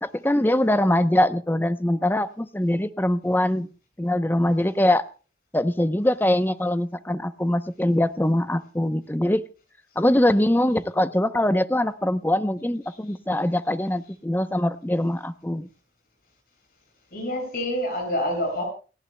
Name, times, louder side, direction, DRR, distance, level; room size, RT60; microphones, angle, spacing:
voice 1, 0.0-3.7 4.0-5.0 5.5-9.4 10.0-15.7, left 1 dB, 10° left, 11 dB, 0.7 m, -23 dB
voice 2, 17.1-18.6, equal, 55° left, 1 dB, 6.3 m, -27 dB
29.5 x 11.5 x 2.2 m, 0.34 s
head